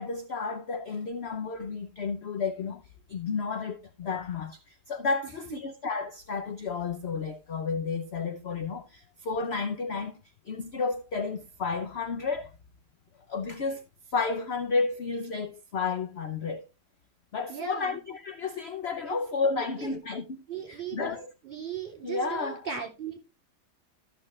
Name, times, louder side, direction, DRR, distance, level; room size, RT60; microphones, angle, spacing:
voice 1, 0.0-2.8 3.1-10.2 10.5-12.5 13.3-13.8 14.1-16.6 17.3-21.2 22.0-22.6, left 4 dB, 50° left, 0.8 m, -32 dB
voice 2, 5.2-5.6 17.5-18.0 19.0-19.2 19.6-19.9 20.5-23.2, right 7 dB, 30° right, 3.3 m, -38 dB
14.0 x 6.6 x 3.2 m
omnidirectional pair, 1.8 m